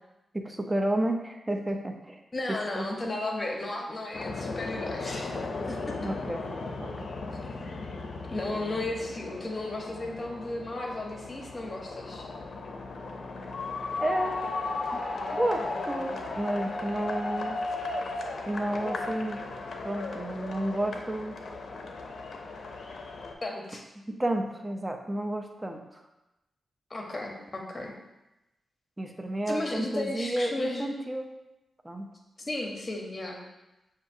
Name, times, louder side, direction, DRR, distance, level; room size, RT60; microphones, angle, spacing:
voice 1, 0.3-2.2 2.5-2.9 6.0-6.5 6.8-7.1 14.0-14.4 15.3-17.6 18.5-19.5 19.8-21.4 24.1-26.0 29.0-31.3 31.8-32.1, right 1 dB, 15° right, 4 dB, 0.5 m, -31 dB
voice 2, 2.3-6.0 7.4-8.0 8.3-12.3 23.4-23.8 26.9-28.0 29.5-30.9 32.4-33.4, left 2 dB, 35° left, 0 dB, 0.9 m, -34 dB
sound 1, 4.1-23.3, left 3 dB, 65° left, 0.5 m, -36 dB
6.5 x 2.4 x 2.7 m, 0.97 s
cardioid pair, 65°, 0 cm